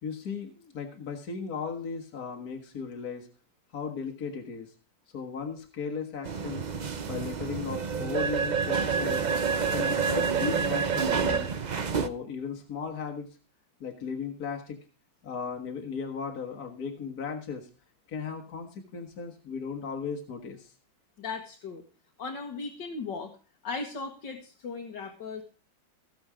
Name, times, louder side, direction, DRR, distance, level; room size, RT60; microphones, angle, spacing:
voice 1, 0.0-3.3 3.7-4.7 5.1-6.7 7.0-9.2 9.7-11.5 12.0-13.4 13.8-14.8 15.2-17.7 18.1-20.7, left 6 dB, 50° left, 2 dB, 2.0 m, -36 dB
sound 1, 6.2-12.1, right 5 dB, 75° right, 0.4 m, -28 dB
voice 2, 21.2-21.8 22.2-23.3 23.6-25.4, left 4 dB, 70° left, 2 dB, 2.2 m, -37 dB
16.5 x 7.1 x 4.9 m, 0.38 s
omnidirectional pair, 2.1 m